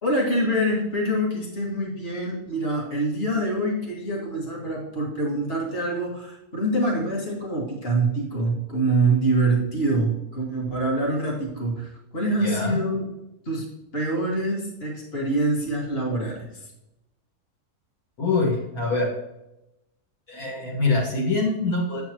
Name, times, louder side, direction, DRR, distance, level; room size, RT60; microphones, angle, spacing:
voice 1, 0.0-13.1 13.5-13.7 13.9-16.6, right 2 dB, 40° left, -3 dB, 2.2 m, -25 dB
voice 2, 12.4-12.8 18.2-19.1 20.3-22.0, left 3 dB, 65° left, -3 dB, 2.1 m, -24 dB
8.5 x 7.8 x 3.0 m, 0.90 s
omnidirectional pair, 1.7 m